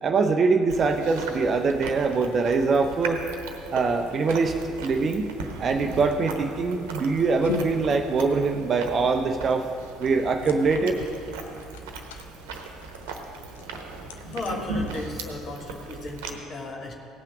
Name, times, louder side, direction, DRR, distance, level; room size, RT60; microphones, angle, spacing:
voice 1, 0.0-3.2 3.7-5.2 5.6-9.6 10.0-11.0, right 4 dB, 40° right, 5 dB, 0.6 m, -23 dB
Chewing mastication, 0.7-16.3, right 3 dB, 70° right, 1.1 m, -38 dB
sound 1, 7.4-15.5, left 5 dB, 80° left, 0.6 m, -41 dB
voice 2, 14.3-16.9, left 2 dB, 45° left, 1 dB, 1.5 m, -35 dB
17.5 x 5.8 x 5.9 m, 2.5 s
figure-of-eight pair, 55°, 0 cm